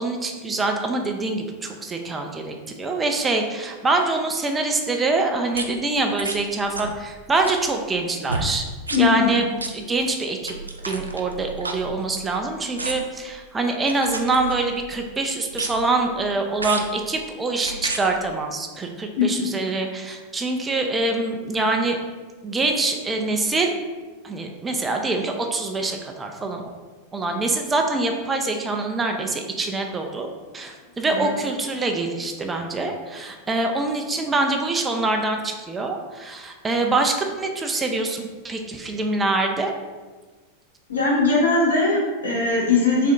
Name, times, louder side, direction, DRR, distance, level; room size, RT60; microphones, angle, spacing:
voice 1, 0.0-8.6 9.0-10.6 10.9-22.0 22.4-23.8 24.2-26.6 27.1-30.3 30.5-39.7, right 3 dB, 15° right, 3 dB, 0.4 m, -25 dB
Mouth Saliva Sounds, 5.5-5.7 6.2-6.4 6.7-7.0 7.3-7.7 8.3-8.5 8.8-9.0 9.6-9.7 10.4-12.3 12.8-13.2 13.9-14.8 15.5-16.0 16.6-16.9 17.6-18.0 18.8-18.9, right 3 dB, 80° right, 0.4 m, -31 dB
voice 2, 8.9-9.4 19.2-19.5 31.1-31.3 40.9-43.1, left 3 dB, 70° left, -5 dB, 1.3 m, -20 dB
3.5 x 3.3 x 3.8 m, 1.4 s
figure-of-eight pair, 90°, 0 cm